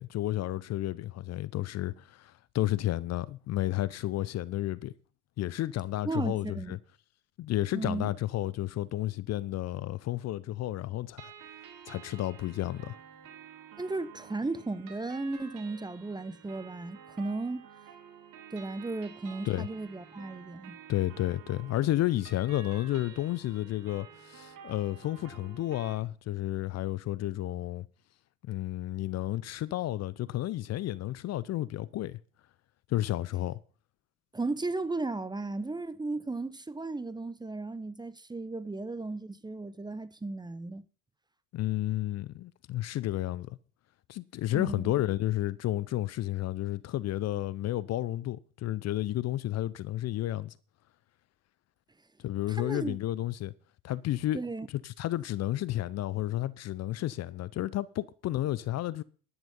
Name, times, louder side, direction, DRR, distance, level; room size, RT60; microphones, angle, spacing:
voice 1, 0.0-4.9 5.4-6.8 7.4-11.3 11.9-13.0 19.5-19.7 20.9-27.9 28.4-32.2 32.9-33.6 41.5-43.6 44.1-50.5 52.2-53.5 53.8-54.4 54.7-59.0, left 14 dB, 40° left, 0.6 m, -31 dB
voice 2, 6.0-6.8 7.7-8.1 13.8-17.7 18.5-20.8 34.3-40.8 44.5-44.9 52.5-53.0 54.3-54.7, right 3 dB, 10° right, 0.8 m, -35 dB
sound 1, 11.2-25.9, right 8 dB, 50° right, 3.1 m, -51 dB
11.0 x 9.0 x 5.5 m
figure-of-eight pair, 60°, 40 cm